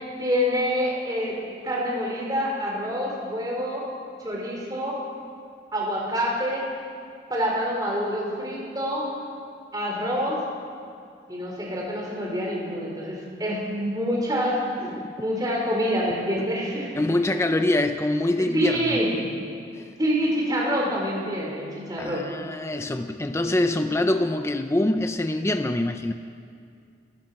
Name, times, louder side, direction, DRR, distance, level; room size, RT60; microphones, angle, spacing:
voice 1, 0.2-3.9 4.2-5.0 5.7-6.7 7.3-9.1 9.7-10.4 11.3-14.6 15.2-16.9 18.5-19.1 19.8-22.3, equal, 20° right, -2 dB, 4.7 m, -26 dB
voice 2, 14.8-15.1 17.0-19.0 19.7-19.9 22.0-26.1, left 1 dB, 15° left, 7 dB, 0.6 m, -24 dB
28.5 x 15.5 x 5.9 m, 2.4 s
head